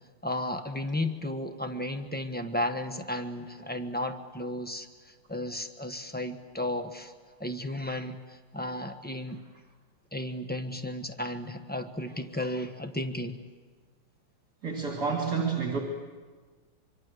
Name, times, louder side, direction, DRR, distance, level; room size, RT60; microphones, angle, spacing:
voice 1, 0.2-7.1 7.4-9.4 10.1-13.4, left 1 dB, 5° left, 6 dB, 0.9 m, -34 dB
voice 2, 14.6-15.8, right 5 dB, 50° right, 1 dB, 2.9 m, -29 dB
25.0 x 24.0 x 8.0 m, 1.4 s
omnidirectional pair, 2.3 m